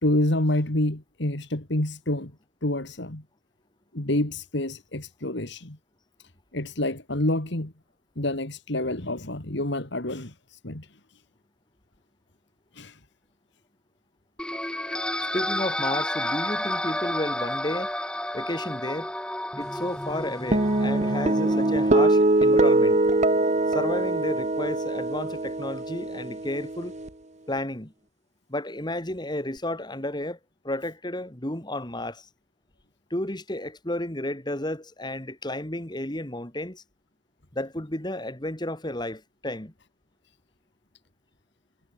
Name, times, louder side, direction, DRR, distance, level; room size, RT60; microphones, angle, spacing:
voice 1, 0.0-2.3 2.6-3.2 3.9-5.8 6.5-7.7 8.2-10.9 12.7-13.0, left 1 dB, 60° left, 2.5 m, -28 dB
sound 1, 14.4-22.0, left 1 dB, 5° left, 2.9 m, -31 dB
voice 2, 15.3-17.9 18.3-19.1 19.6-23.0 23.7-27.0 27.5-27.9 28.5-30.4 30.6-32.3 33.1-36.8 37.5-39.7, left 1 dB, 20° left, 2.3 m, -32 dB
sound 2, 20.5-27.1, right 2 dB, 35° right, 1.1 m, -23 dB
head